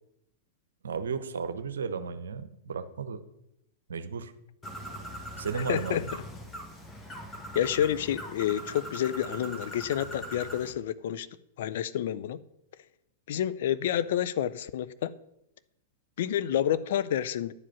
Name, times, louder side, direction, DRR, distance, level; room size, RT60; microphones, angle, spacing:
voice 1, 0.8-3.2 3.9-4.3 5.4-6.1, right 5 dB, 75° right, 11 dB, 0.8 m, -34 dB
Bird, 4.6-10.7, equal, 15° left, 1.6 m, -41 dB
voice 2, 5.5-6.0 7.5-11.3 11.6-12.4 13.3-15.1 16.2-17.5, left 10 dB, 60° left, 14 dB, 0.5 m, -29 dB
9.8 x 4.9 x 7.0 m, 0.84 s
figure-of-eight pair, 100°, 0 cm